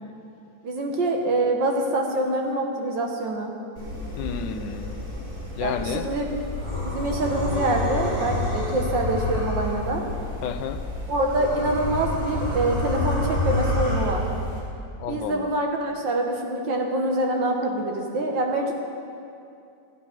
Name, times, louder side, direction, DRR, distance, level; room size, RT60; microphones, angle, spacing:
voice 1, 0.6-3.5 5.6-6.4 6.8-10.0 11.1-14.2 15.1-18.8, right 1 dB, 75° right, 1 dB, 2.1 m, -25 dB
sound 1, 3.8-14.6, left 1 dB, 55° right, 4.5 m, -29 dB
voice 2, 4.2-5.1 5.6-6.1 10.4-10.9 15.0-15.5, left 7 dB, 75° left, 9 dB, 1.3 m, -31 dB
13.5 x 9.7 x 6.1 m, 2.5 s
omnidirectional pair, 2.0 m